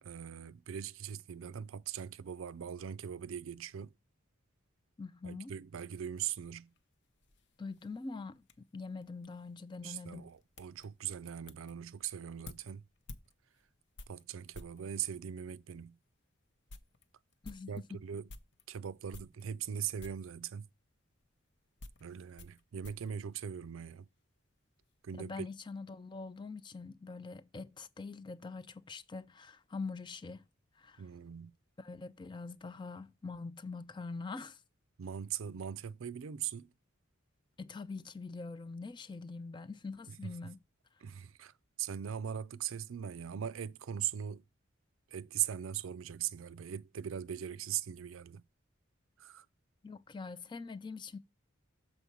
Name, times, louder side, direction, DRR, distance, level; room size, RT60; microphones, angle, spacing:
voice 1, 0.0-3.9 5.2-6.7 9.8-12.8 14.1-16.0 17.7-18.3 18.7-20.7 22.0-24.1 25.0-25.5 31.0-31.5 35.0-36.7 40.1-40.3 41.0-41.5 41.8-44.4 45.1-48.4 49.2-49.5, right 9 dB, 75° right, 0.4 m, -40 dB
voice 2, 5.0-5.5 7.6-10.3 17.4-17.7 25.1-30.4 30.8-31.0 31.8-34.6 37.6-40.6 49.8-51.2, left 4 dB, 25° left, 0.4 m, -44 dB
sound 1, 6.2-14.9 15.6-15.7 16.1-16.2 16.5-18.7 19.1-19.7 20.0-20.4 21.2-24.1 24.4-24.9, left 2 dB, 60° left, 0.7 m, -55 dB
7.0 x 4.4 x 4.5 m
head